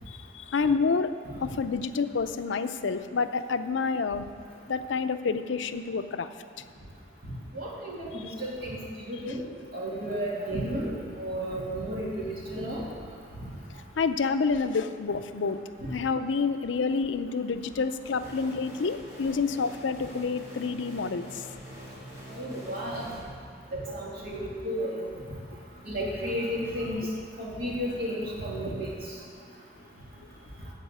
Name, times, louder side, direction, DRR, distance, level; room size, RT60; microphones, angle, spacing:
voice 1, 0.1-1.1 1.4-4.3 4.7-6.3 14.0-15.6 15.9-21.4, left 4 dB, 80° left, 10 dB, 0.5 m, -28 dB
voice 2, 7.5-8.8 9.1-9.4 9.7-10.9 11.2-12.8 13.4-13.5 15.8-15.9 22.3-23.1 23.7-25.0 25.8-27.1 27.4-28.9, equal, 55° right, -4 dB, 2.6 m, -33 dB
sound 1, 18.0-23.2, equal, 15° right, 2.1 m, -45 dB
13.5 x 4.8 x 8.0 m, 2.2 s
head